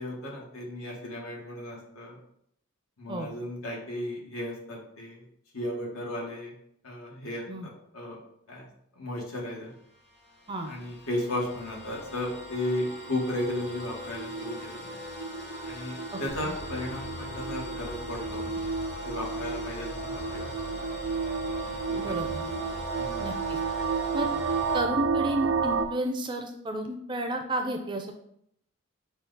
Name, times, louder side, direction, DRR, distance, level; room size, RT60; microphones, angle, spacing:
voice 1, 0.0-2.2 3.0-5.2 5.5-6.5 6.8-8.2 8.5-8.7 8.9-9.7 10.6-14.9 15.6-18.7 19.0-20.5 21.0-21.1 21.9-22.3 23.0-23.2, left 1 dB, 80° left, -2 dB, 1.3 m, -35 dB
sound 1, 9.6-24.8, equal, 50° left, 1.2 m, -42 dB
sound 2, 13.9-25.8, right 5 dB, 85° right, 0.4 m, -32 dB
voice 2, 16.1-16.6 21.9-22.5 23.2-23.6 24.1-24.3 24.7-28.1, right 1 dB, 20° right, 5 dB, 0.4 m, -32 dB
sound 3, 16.3-25.8, left 2 dB, 35° left, 0.5 m, -44 dB
5.8 x 2.3 x 3.8 m, 0.72 s
head